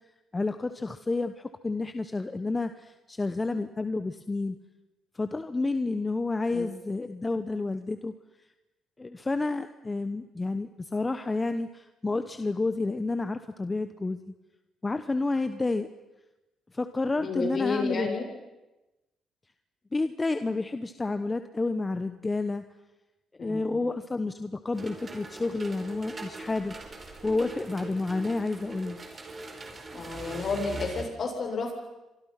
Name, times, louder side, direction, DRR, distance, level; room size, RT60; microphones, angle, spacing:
voice 1, 0.3-4.6 5.1-8.1 9.0-14.2 14.8-15.9 16.7-18.1 19.9-22.6 23.4-26.8 27.2-29.0, left 3 dB, 20° left, 10 dB, 1.2 m, -30 dB
voice 2, 17.1-18.2 23.4-23.8 29.9-31.8, left 4 dB, 50° left, 3 dB, 7.3 m, -31 dB
sound 1, 24.7-31.0, right 3 dB, 30° right, 4.7 m, -41 dB
29.0 x 24.5 x 6.0 m, 1.0 s
cardioid pair, 90°, 0 cm